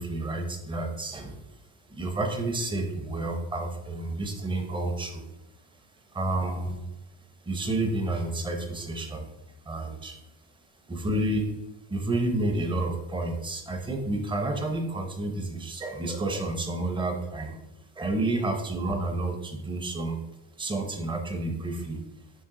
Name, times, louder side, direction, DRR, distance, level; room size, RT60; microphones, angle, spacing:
voice 1, 0.0-1.5 1.9-5.2 6.1-6.8 7.4-9.3 9.6-10.2 10.9-11.4 11.9-17.6 18.0-20.2 20.5-22.0, right 2 dB, 10° right, 5 dB, 0.7 m, -30 dB
9.5 x 3.5 x 3.7 m, 0.95 s
cardioid pair, 160°, 39 cm